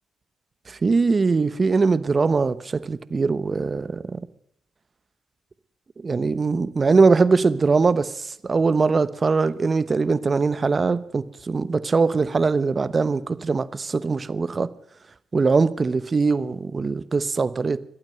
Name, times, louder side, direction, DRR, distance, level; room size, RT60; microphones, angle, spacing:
voice 1, 0.7-4.2 6.0-14.7 15.3-17.8, right 4 dB, 30° right, 0.9 m, -21 dB
24.5 x 8.9 x 6.5 m
cardioid pair, 90°, 0 cm